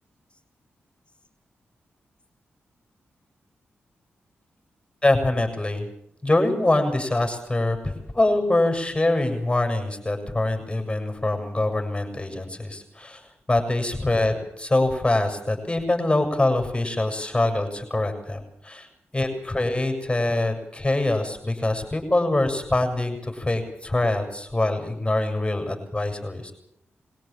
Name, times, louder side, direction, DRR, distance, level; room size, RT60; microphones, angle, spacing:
voice 1, 5.0-5.9 6.2-13.2 13.5-18.9 19.1-26.5, left 2 dB, 20° left, 5 dB, 7.4 m, -24 dB
22.5 x 17.0 x 8.9 m, 0.74 s
supercardioid pair, 45°, 5 cm